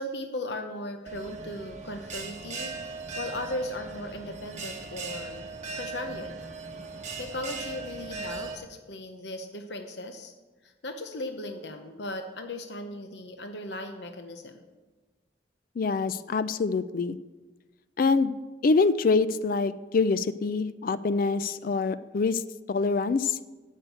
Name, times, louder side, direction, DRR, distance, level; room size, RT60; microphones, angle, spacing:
voice 1, 0.0-2.7 3.2-5.5 5.7-6.4 7.1-10.3 10.6-14.6, left 1 dB, 70° left, 6 dB, 0.9 m, -37 dB
Bell, 1.1-8.6, right 4 dB, 40° right, 1.3 m, -39 dB
voice 2, 15.8-17.2 18.0-18.3 18.6-22.4 22.7-23.4, left 4 dB, 50° left, 15 dB, 0.4 m, -25 dB
10.5 x 6.6 x 7.9 m, 1.2 s
head